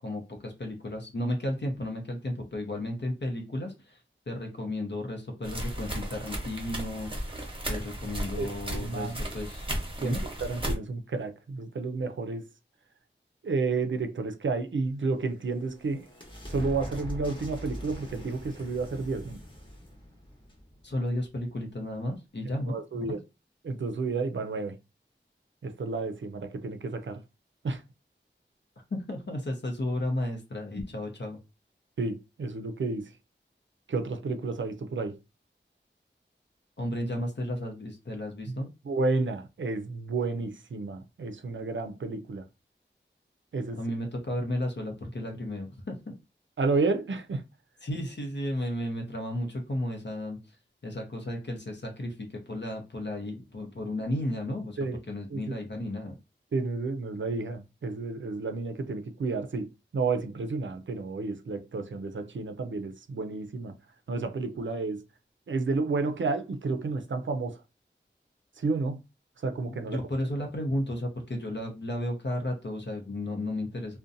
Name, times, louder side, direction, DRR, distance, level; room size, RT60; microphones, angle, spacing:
voice 1, 0.0-4.0 4.3-7.4 7.7-9.7 10.0-10.2 20.8-23.2 28.9-31.4 36.8-38.7 43.7-46.1 47.8-50.6 50.8-54.8 55.1-56.1 69.7-74.0, left 1 dB, 65° left, 0.7 m, -33 dB
sound 1, 5.4-10.7, right 1 dB, 25° right, 0.8 m, -35 dB
voice 2, 8.4-9.2 10.0-12.5 13.4-16.1 16.5-19.4 22.7-23.2 23.6-24.8 25.6-27.2 27.6-27.8 32.0-33.1 33.9-35.2 38.5-38.6 38.9-42.4 43.5-43.8 46.6-47.4 54.8-55.0 55.3-55.5 56.5-63.7 64.1-65.0 65.5-67.6 68.6-69.0 69.4-70.0, right 3 dB, 75° right, 0.4 m, -31 dB
sound 2, 15.1-21.5, equal, 25° left, 0.9 m, -42 dB
2.5 x 2.2 x 2.5 m
wide cardioid pair, 50°, 20 cm